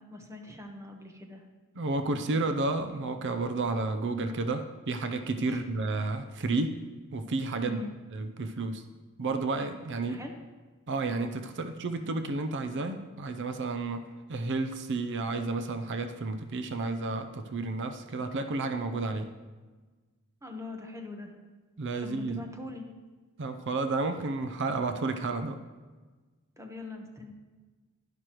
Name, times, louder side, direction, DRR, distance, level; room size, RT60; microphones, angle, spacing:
voice 1, 0.1-1.4 5.4-5.6 7.7-7.9 10.1-10.3 20.4-21.3 22.0-22.9 26.6-27.3, left 2 dB, 15° right, 3 dB, 1.1 m, -42 dB
voice 2, 1.7-6.8 7.1-7.8 8.1-8.8 9.2-10.3 10.9-19.3 21.8-22.4 23.4-25.6, right 3 dB, 55° right, 8 dB, 0.6 m, -31 dB
11.0 x 11.0 x 3.0 m, 1.3 s
head